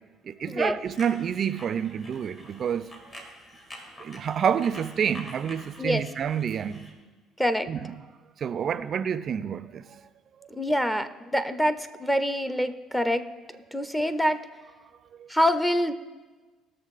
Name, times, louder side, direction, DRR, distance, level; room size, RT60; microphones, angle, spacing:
voice 1, 0.3-2.9 4.0-6.8 7.7-7.8 8.4-10.0 15.2-15.3, right 8 dB, 50° right, 0.4 m, -28 dB
sound 1, 0.8-6.9, left 1 dB, 35° left, 2.4 m, -47 dB
voice 2, 10.5-13.3 13.7-14.5 15.3-15.9, equal, 5° left, 0.6 m, -25 dB
18.0 x 6.6 x 4.1 m
cardioid pair, 100°, 0 cm